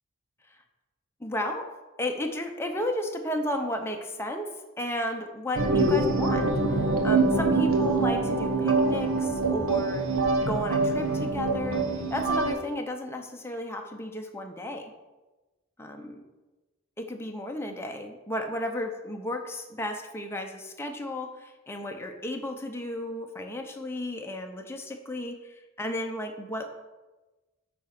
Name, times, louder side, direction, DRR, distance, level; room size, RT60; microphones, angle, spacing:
voice 1, 1.2-1.7 2.0-14.9 15.8-16.2 17.0-26.7, left 1 dB, 10° left, 3 dB, 0.7 m, -34 dB
sound 1, 5.6-12.5, right 3 dB, 75° right, 1.2 m, -25 dB
8.5 x 4.3 x 5.9 m, 1.1 s
head